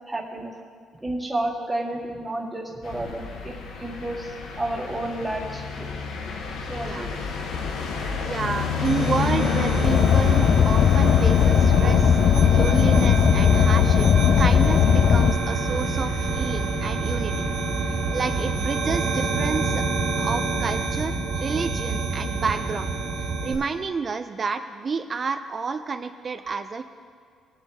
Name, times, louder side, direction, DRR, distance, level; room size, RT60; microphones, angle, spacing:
voice 1, 0.1-0.5 1.0-5.9 6.7-7.1 18.1-18.2, right 1 dB, 5° right, -4 dB, 1.9 m, -31 dB
sound 1, 2.8-20.8, left 5 dB, 85° left, 1.1 m, -32 dB
voice 2, 8.3-12.2 12.5-14.1 14.4-17.5 17.9-19.8 20.2-22.9 23.2-26.8, right 5 dB, 30° right, 9 dB, 0.4 m, -30 dB
sound 2, 8.8-23.5, right 3 dB, 60° right, 1.8 m, -27 dB
Car, 9.8-15.3, left 9 dB, 50° left, 0.3 m, -18 dB
21.0 x 7.0 x 3.4 m, 2.2 s
cardioid pair, 155°, 0 cm